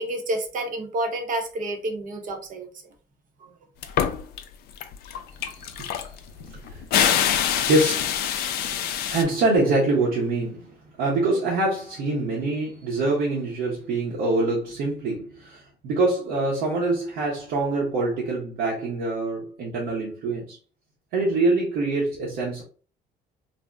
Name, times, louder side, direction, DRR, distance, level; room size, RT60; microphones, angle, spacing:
voice 1, 0.0-2.7 3.4-3.5 3.9-4.0, right 1 dB, 50° right, 0.7 m, -29 dB
sound 1, 3.8-4.4 4.8-9.2, left 9 dB, 70° left, 0.4 m, -24 dB
voice 2, 5.4-6.2 6.4-6.9 7.6-8.2 8.7-20.6 21.1-22.6, right 2 dB, 85° right, 0.9 m, -25 dB
2.6 x 2.0 x 3.3 m
cardioid pair, 110°, 17 cm